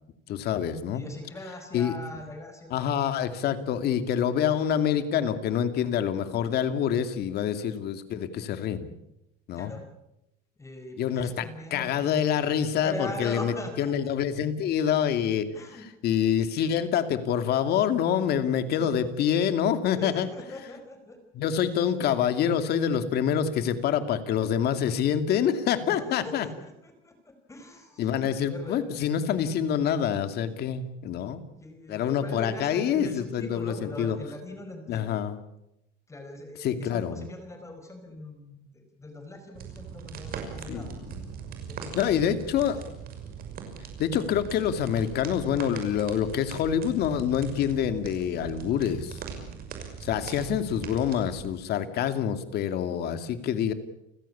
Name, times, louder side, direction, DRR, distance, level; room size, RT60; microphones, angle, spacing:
voice 1, 0.3-1.0 1.7-1.9 2.7-8.9 9.5-9.7 11.0-15.5 16.0-20.3 21.3-26.5 28.0-31.4 31.9-34.2 34.9-35.4 36.6-37.3 40.7-40.9 41.9-42.8 44.0-49.2 50.0-53.7, left 9 dB, 55° left, 9 dB, 2.5 m, -26 dB
voice 2, 0.9-2.8 9.6-9.8 10.6-12.1 12.8-13.9 15.5-15.9 18.6-18.9 19.9-21.2 25.8-28.9 31.6-35.2 36.1-40.9 41.6-42.2 42.6-42.7, left 1 dB, 15° left, 5 dB, 4.5 m, -41 dB
sound 1, 39.5-51.5, right 7 dB, 50° right, 6.0 m, -40 dB
29.5 x 16.0 x 8.6 m, 0.87 s
cardioid pair, 140°, 19 cm